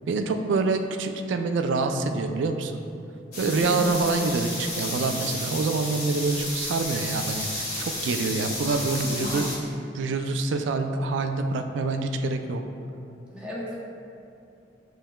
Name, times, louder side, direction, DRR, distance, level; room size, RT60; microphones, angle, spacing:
voice 1, 0.1-2.7 3.4-9.5 9.9-12.6, right 3 dB, 90° right, 7 dB, 0.3 m, -26 dB
sound 1, 3.3-9.5, left 1 dB, 60° left, 1.4 m, -32 dB
voice 2, 3.5-4.1 9.0-9.4 13.3-13.7, left 1 dB, 5° right, -6 dB, 0.7 m, -35 dB
7.2 x 3.3 x 2.2 m, 2.6 s
head